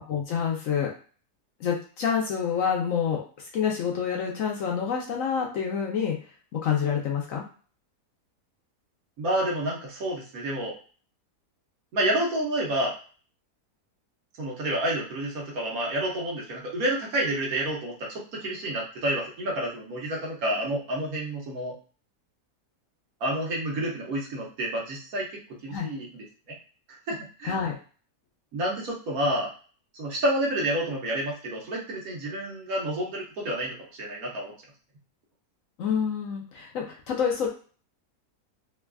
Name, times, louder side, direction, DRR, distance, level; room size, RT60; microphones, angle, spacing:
voice 1, 0.1-0.9 1.6-3.2 3.5-6.2 6.5-7.4 25.7-25.9 27.5-27.7 35.8-37.5, left 7 dB, 65° left, 0 dB, 0.9 m, -27 dB
voice 2, 9.2-10.7 11.9-12.9 14.4-21.7 23.2-25.3 25.6-26.1 26.5-26.6 27.1-27.5 28.5-29.5 29.9-34.5, right 1 dB, 65° right, -3 dB, 1.3 m, -29 dB
3.2 x 2.3 x 2.2 m, 0.39 s
omnidirectional pair, 1.7 m